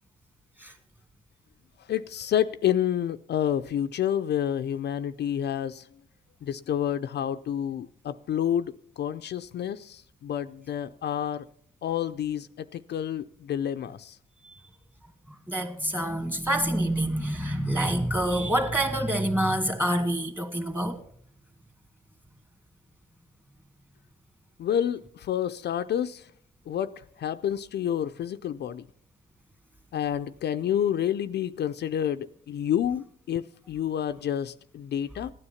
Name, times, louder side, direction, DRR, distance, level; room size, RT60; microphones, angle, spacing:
voice 1, 1.9-5.9 6.4-11.5 11.8-14.2 24.6-26.3 26.7-26.9 27.2-28.9 29.9-35.3, left 10 dB, 60° left, 0.5 m, -29 dB
voice 2, 15.5-21.0, right 1 dB, 10° right, 1.9 m, -27 dB
15.0 x 9.8 x 5.7 m
cardioid pair, 90°, 20 cm